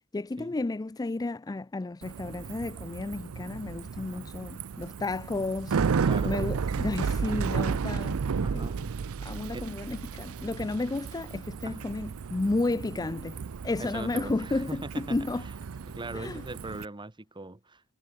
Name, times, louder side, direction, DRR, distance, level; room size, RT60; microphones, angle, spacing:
voice 1, 0.0-8.9 9.2-13.4 13.6-15.5 16.1-16.4, left 2 dB, 15° left, 0.4 m, -32 dB
Bicycle, 2.0-16.8, right 5 dB, 70° right, 0.5 m, -33 dB
voice 2, 4.0-4.3 6.0-6.3 8.4-8.8 9.5-9.7 11.6-11.9 13.8-15.2 15.9-17.9, right 2 dB, 20° right, 1.2 m, -40 dB
head